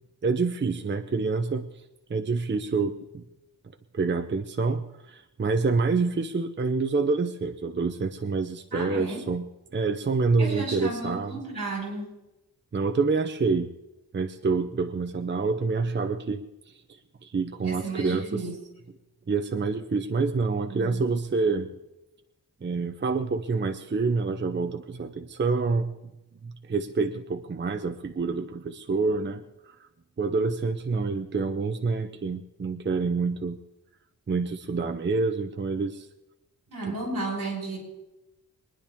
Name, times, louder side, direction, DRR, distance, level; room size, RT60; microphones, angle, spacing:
voice 1, 0.2-1.7 2.1-3.2 3.9-11.4 12.7-13.7 14.1-16.4 16.7-16.8 17.2-18.4 19.3-21.7 22.6-25.9 26.4-29.4 30.2-33.6 34.3-36.1 36.9-37.0, right 4 dB, 30° right, 7 dB, 0.6 m, -27 dB
voice 2, 8.7-9.2 10.4-12.2 17.6-18.6 20.7-21.0 36.7-37.8, right 2 dB, 55° right, -1 dB, 5.0 m, -33 dB
23.0 x 10.0 x 3.6 m, 0.95 s
wide cardioid pair, 150°, 39 cm